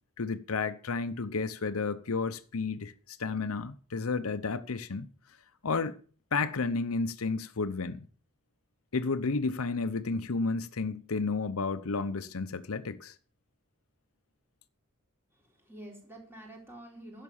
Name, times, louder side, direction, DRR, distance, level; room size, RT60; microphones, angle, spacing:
voice 1, 0.2-5.1 5.6-6.0 6.3-8.1 8.9-13.1, left 4 dB, 75° left, 0.8 m, -32 dB
voice 2, 15.3-17.2, right 1 dB, 10° right, 4.0 m, -48 dB
11.0 x 6.8 x 7.0 m
head